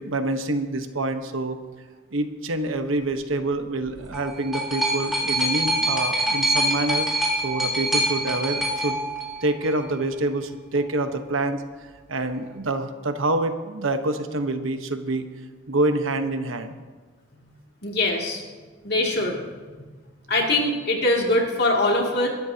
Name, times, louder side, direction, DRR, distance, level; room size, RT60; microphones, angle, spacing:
voice 1, 0.0-1.6 2.1-7.1 7.4-9.0 9.4-11.6 12.1-15.3 15.7-16.7, right 2 dB, 85° right, 7 dB, 1.2 m, -26 dB
sound 1, 3.9-9.9 10.8-10.9, right 1 dB, ahead, 3.5 m, -25 dB
voice 2, 17.8-18.4 18.8-19.4 20.3-22.3, left 2 dB, 55° left, -1 dB, 2.7 m, -22 dB
22.5 x 13.0 x 2.9 m, 1.4 s
head